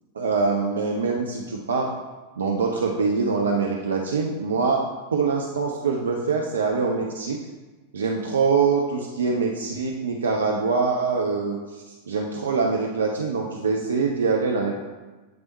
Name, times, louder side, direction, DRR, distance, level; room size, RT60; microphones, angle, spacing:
voice 1, 0.2-1.9 2.4-4.8 5.1-7.4 7.9-14.8, right 4 dB, 70° right, 1 dB, 0.5 m, -24 dB
7.9 x 3.4 x 4.0 m, 1.2 s
figure-of-eight pair, 90°, 0 cm